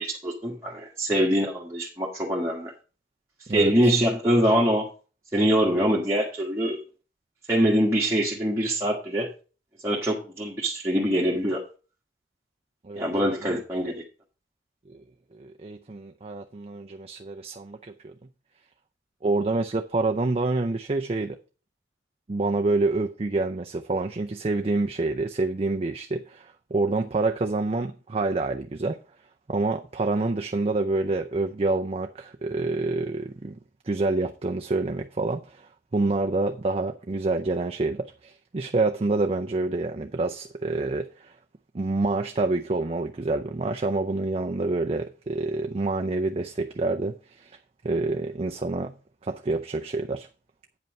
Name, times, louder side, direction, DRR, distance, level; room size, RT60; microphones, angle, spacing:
voice 1, 0.2-2.7 3.5-4.9 5.3-6.8 7.5-9.3 9.8-11.7 13.0-13.9, equal, 15° right, 1.4 m, -24 dB
voice 2, 3.5-4.0 12.8-13.6 14.9-15.0 15.4-18.1 19.2-21.4 22.3-29.0 29.5-33.6 33.8-41.3 41.7-47.6 47.8-48.9 49.2-50.3, right 3 dB, 30° right, 0.5 m, -27 dB
8.9 x 5.4 x 5.3 m
head